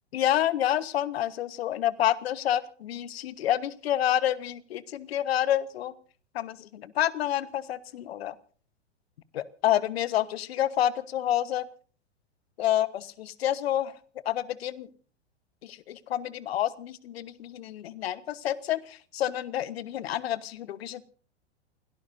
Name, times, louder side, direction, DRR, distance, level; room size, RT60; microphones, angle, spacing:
voice 1, 0.1-5.9 6.3-8.3 9.3-11.7 12.6-13.9 14.2-14.9 15.6-21.0, left 12 dB, 60° left, 16 dB, 1.2 m, -28 dB
29.0 x 17.0 x 2.6 m, 0.43 s
figure-of-eight pair, 105°, 34 cm